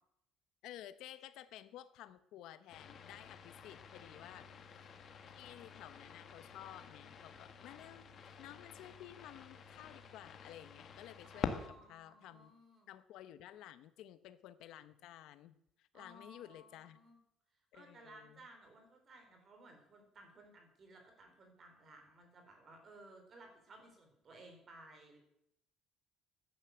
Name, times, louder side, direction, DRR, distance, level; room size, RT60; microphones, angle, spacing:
voice 1, 0.6-4.9 5.3-8.1 8.4-11.6 11.9-12.5 12.9-17.0 17.7-18.5, left 12 dB, 65° left, 13 dB, 0.9 m, -54 dB
sound 1, 2.7-11.7, left 6 dB, 35° left, 1.5 m, -48 dB
voice 2, 11.3-12.9 15.9-17.2 17.7-25.2, right 1 dB, 30° right, 4 dB, 4.3 m, -58 dB
15.0 x 10.5 x 7.9 m, 0.77 s
cardioid pair, 165°, 0 cm